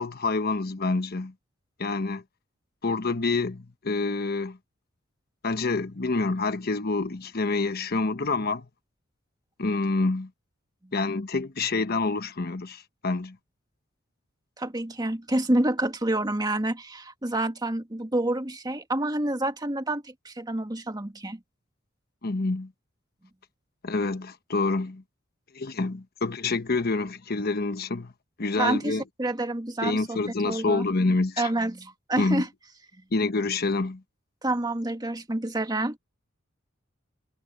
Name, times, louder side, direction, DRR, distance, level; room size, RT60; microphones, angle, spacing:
voice 1, 0.0-1.3 1.8-2.2 2.8-4.6 5.4-8.7 9.6-10.3 10.9-13.4 22.2-22.7 23.8-25.0 25.5-28.1 28.4-29.0 29.8-31.5 32.2-32.4 33.1-34.0, left 3 dB, 50° left, 1.1 m, -27 dB
voice 2, 14.6-21.4 28.6-30.8 31.4-32.5 34.4-36.0, right 1 dB, 20° right, 1.8 m, -28 dB
head